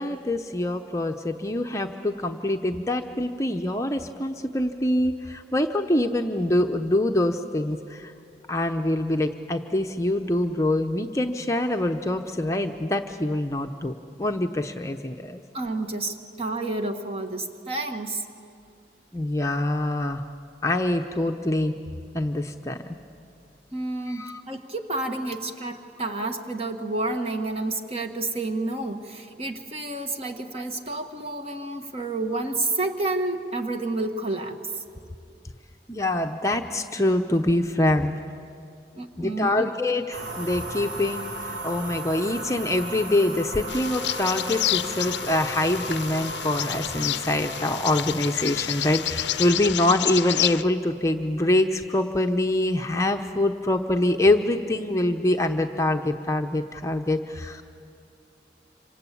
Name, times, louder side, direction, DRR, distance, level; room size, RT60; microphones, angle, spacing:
voice 1, 0.0-8.1 8.5-13.9 14.2-15.4 19.1-20.3 20.6-21.7 22.1-22.8 24.1-24.4 35.9-38.1 39.2-57.6, left 1 dB, 15° left, 4 dB, 0.8 m, -25 dB
voice 2, 15.5-18.2 23.7-34.6 38.9-39.7, right 2 dB, 35° right, 5 dB, 1.7 m, -30 dB
sound 1, 40.1-49.5, right 1 dB, 80° right, 3.4 m, -36 dB
Bird vocalization bird call bird song, 43.7-50.6, left 12 dB, 75° left, 0.6 m, -29 dB
26.5 x 26.5 x 8.5 m, 2.4 s
head